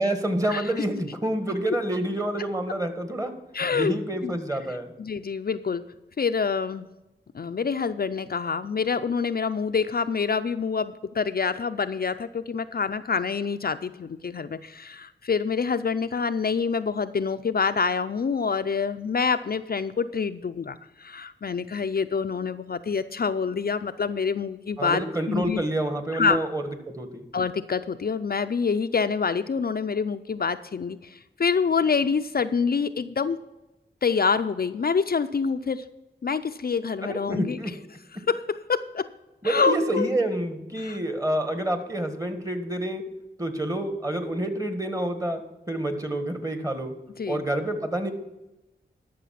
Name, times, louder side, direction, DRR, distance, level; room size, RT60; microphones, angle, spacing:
voice 1, 0.0-3.3 3.7-4.9 24.8-27.2 37.0-37.7 39.4-43.0 43.4-45.4 45.7-46.9 47.3-48.1, right 1 dB, 20° right, 7 dB, 1.6 m, -28 dB
voice 2, 3.5-3.9 4.2-4.3 5.0-5.8 6.2-6.9 7.3-25.0 25.3-25.6 26.1-26.4 27.3-33.4 34.0-35.8 36.2-37.8 38.1-39.1 39.4-40.1 40.8-41.0 47.2-47.4, left 5 dB, 55° left, 9 dB, 0.5 m, -26 dB
12.5 x 6.2 x 5.8 m, 0.99 s
cardioid pair, 50°, 19 cm